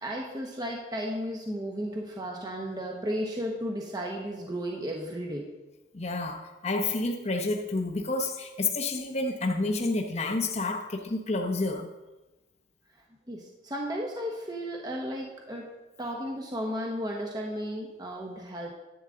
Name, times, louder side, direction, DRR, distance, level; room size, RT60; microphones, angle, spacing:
voice 1, 0.0-5.5 13.3-15.7 16.0-18.7, equal, 25° right, -1 dB, 1.1 m, -34 dB
voice 2, 5.9-11.9, left 2 dB, 40° left, 3 dB, 0.8 m, -29 dB
11.0 x 8.9 x 3.8 m, 1.1 s
head